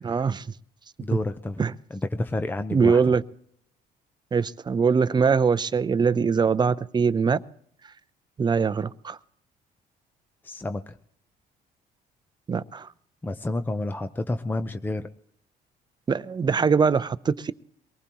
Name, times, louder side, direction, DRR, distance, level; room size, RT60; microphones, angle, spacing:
voice 1, 0.0-0.5 1.6-1.7 2.7-3.2 4.3-7.4 8.4-9.2 12.5-12.9 16.1-17.5, right 5 dB, 25° right, 0.6 m, -22 dB
voice 2, 1.0-1.6 1.9-3.0 10.4-11.0 13.2-15.1, left 2 dB, 10° left, 0.7 m, -30 dB
23.5 x 19.0 x 3.0 m
cardioid pair, 110°, 17 cm